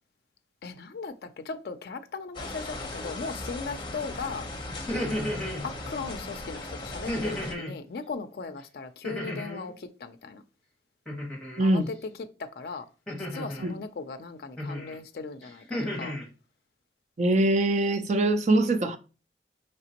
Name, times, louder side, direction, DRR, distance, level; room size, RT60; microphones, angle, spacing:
voice 1, 0.6-4.5 5.6-10.4 11.6-12.0 12.4-12.9 13.2-15.6 16.0-16.2, left 4 dB, 60° left, 0.4 m, -38 dB
sound 1, 2.3-7.5, left 2 dB, 25° left, 0.7 m, -38 dB
sound 2, 4.7-5.6 7.1-7.8 9.0-9.7 11.1-11.6 13.1-13.7 14.6-14.9 15.4-16.3, left 1 dB, 5° left, 1.3 m, -33 dB
voice 2, 11.6-11.9 13.6-13.7 17.2-19.0, right 2 dB, 40° right, 0.4 m, -23 dB
4.9 x 3.3 x 2.9 m
head